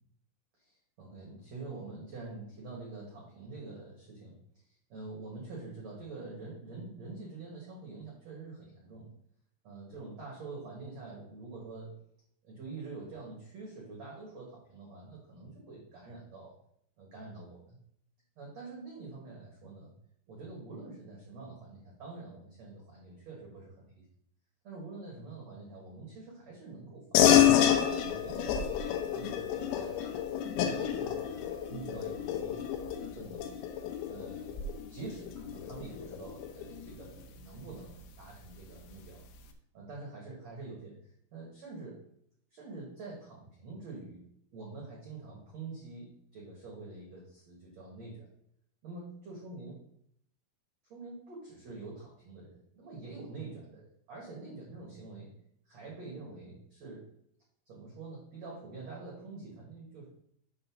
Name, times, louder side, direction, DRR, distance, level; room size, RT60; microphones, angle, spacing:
voice 1, 0.6-9.1 9.6-12.0 12.4-16.5 17.0-17.8 18.3-19.9 20.3-24.0 24.6-27.5 27.9-30.0 30.5-33.5 34.0-34.5 34.9-39.2 39.7-42.0 42.5-44.2 44.5-48.3 48.8-49.8 50.9-55.3 55.6-57.0 57.6-60.1, right 3 dB, 80° right, -3 dB, 1.5 m, -46 dB
sound 1, 27.1-37.0, left 10 dB, 90° left, 3.6 m, -29 dB
7.9 x 3.9 x 6.0 m, 0.71 s
omnidirectional pair, 5.9 m